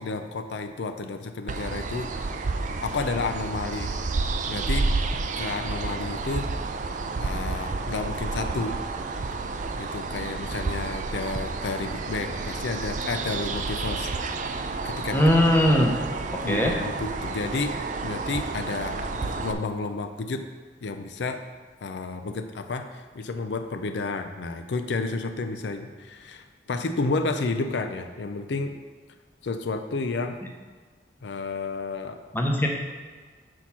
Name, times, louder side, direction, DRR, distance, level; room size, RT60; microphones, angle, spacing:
voice 1, 0.0-2.4 2.8-3.9 4.5-4.9 5.4-6.5 7.2-8.8 9.8-14.1 14.4-15.4 16.4-20.5 20.8-21.4 21.8-28.8 29.4-30.4 31.2-32.2, left 3 dB, 85° left, 7 dB, 0.5 m, -31 dB
sound 1, 1.5-19.5, right 3 dB, 45° right, 0.4 m, -30 dB
voice 2, 15.1-16.0 16.3-16.7 32.3-32.7, left 1 dB, 10° left, 1 dB, 0.8 m, -20 dB
6.3 x 4.4 x 5.7 m, 1.5 s
head